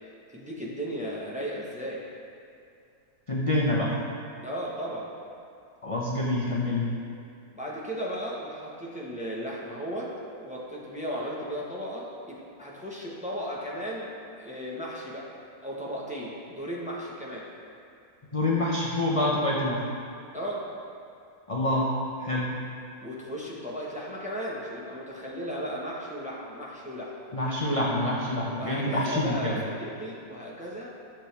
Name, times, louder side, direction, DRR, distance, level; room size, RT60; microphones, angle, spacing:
voice 1, 0.3-2.0 4.4-5.1 7.5-10.1 10.4-15.3 15.6-17.5 20.3-20.6 23.0-27.1 28.6-30.9, equal, 5° right, -5 dB, 1.0 m, -35 dB
voice 2, 3.3-4.0 5.8-6.9 18.3-19.9 21.5-21.9 22.2-22.5 27.3-29.6, left 1 dB, 30° left, -5 dB, 0.7 m, -26 dB
12.0 x 6.7 x 3.4 m, 2.4 s
omnidirectional pair, 1.6 m